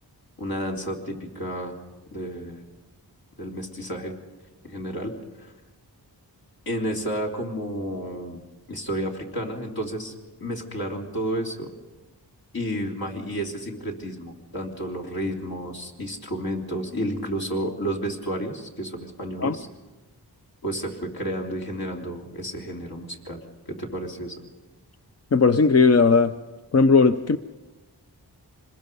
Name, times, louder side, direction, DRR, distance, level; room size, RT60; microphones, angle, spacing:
voice 1, 0.4-1.8 2.1-2.6 3.4-4.1 4.6-5.1 5.4-5.5 6.7-10.1 10.4-11.7 12.5-19.7 20.6-23.4 23.7-24.4, equal, 60° left, 0 dB, 3.6 m, -31 dB
voice 2, 25.3-26.3 26.7-27.4, left 4 dB, 40° left, 10 dB, 0.6 m, -17 dB
26.5 x 21.0 x 5.4 m, 1.2 s
wide cardioid pair, 85°, 41 cm